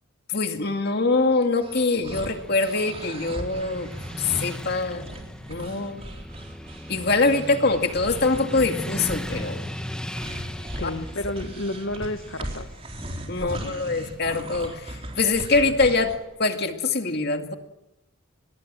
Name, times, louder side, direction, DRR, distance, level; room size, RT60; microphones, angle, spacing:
voice 1, 0.3-5.1 5.5-6.0 6.9-9.7 10.8-10.9 13.3-16.1 16.4-17.5, left 3 dB, 50° left, 5 dB, 2.3 m, -24 dB
sound 1, 1.6-16.2, right 1 dB, 30° right, 4.0 m, -38 dB
Motorcycle / Traffic noise roadway noise, 2.2-16.3, equal, 5° left, 1.4 m, -38 dB
voice 2, 10.7-12.7 13.4-13.8, left 1 dB, 70° left, 8 dB, 1.4 m, -31 dB
24.0 x 21.0 x 7.7 m, 0.91 s
head